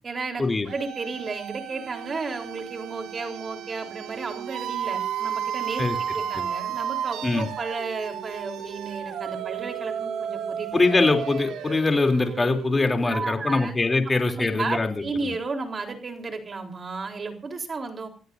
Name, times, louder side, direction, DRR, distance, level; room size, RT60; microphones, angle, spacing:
voice 1, 0.0-10.8 13.1-13.7 14.4-18.1, right 4 dB, 40° right, 4 dB, 3.9 m, -33 dB
sound 1, 0.7-13.5, right 9 dB, 85° right, 2.0 m, -33 dB
voice 2, 10.7-15.0, left 3 dB, 25° left, 4 dB, 3.2 m, -22 dB
28.0 x 16.0 x 2.7 m, 0.38 s
cardioid pair, 90°, 0 cm